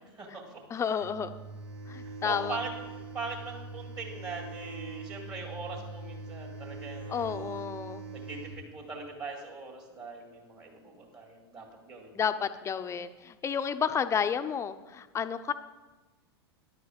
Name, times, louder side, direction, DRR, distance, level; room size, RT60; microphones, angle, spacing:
voice 1, 0.1-0.8 2.0-7.5 8.1-12.3, right 3 dB, 30° right, -2 dB, 2.1 m, -41 dB
voice 2, 0.7-1.3 1.9-2.6 7.1-8.0 12.1-15.5, left 7 dB, 20° left, 11 dB, 0.6 m, -31 dB
sound 1, 1.0-8.6, right 3 dB, 75° right, 1.7 m, -42 dB
10.5 x 4.7 x 7.7 m, 1.2 s
hypercardioid pair, 95°, 13 cm